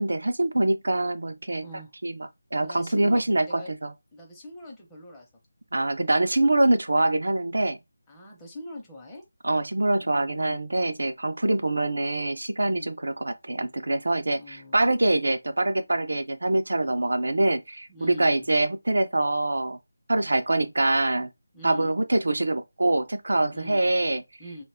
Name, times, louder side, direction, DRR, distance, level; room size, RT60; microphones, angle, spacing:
voice 1, 0.0-1.6 2.0-3.9 5.7-7.8 9.4-19.8 20.1-21.3 21.6-24.2, right 2 dB, 70° right, 0.3 m, -24 dB
voice 2, 1.6-1.9 2.6-3.7 4.1-5.3 8.1-9.2 10.0-10.6 12.7-12.9 14.3-14.9 17.9-18.3 21.5-21.9 23.5-23.8 24.4-24.6, equal, 10° left, 0.7 m, -42 dB
2.2 x 2.0 x 3.3 m
figure-of-eight pair, 160°, 0 cm